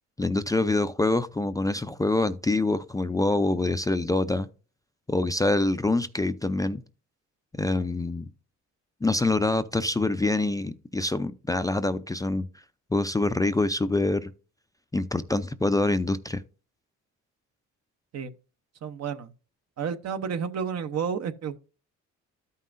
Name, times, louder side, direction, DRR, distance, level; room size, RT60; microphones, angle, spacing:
voice 1, 0.2-4.5 5.1-6.8 7.6-8.3 9.0-12.4 12.9-14.3 14.9-16.4, left 2 dB, 10° left, 0.4 m, -25 dB
voice 2, 18.8-19.3 19.8-21.6, right 7 dB, 60° right, 0.8 m, -31 dB
13.0 x 5.5 x 2.5 m
cardioid pair, 90°, 30 cm